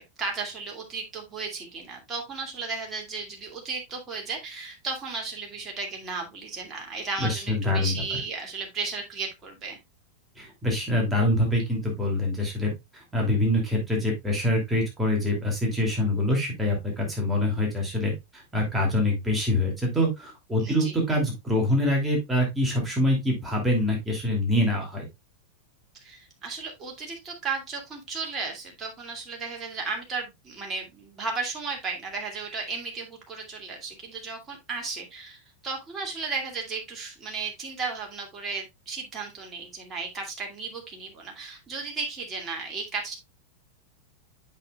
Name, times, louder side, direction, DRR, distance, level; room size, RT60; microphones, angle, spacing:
voice 1, 0.0-9.8 20.6-21.0 26.0-43.2, right 4 dB, 25° right, 1 dB, 2.4 m, -34 dB
voice 2, 7.2-8.0 10.4-25.1, left 1 dB, 10° right, -1 dB, 2.7 m, -25 dB
8.1 x 6.3 x 2.3 m, 0.20 s
figure-of-eight pair, 90°, 0 cm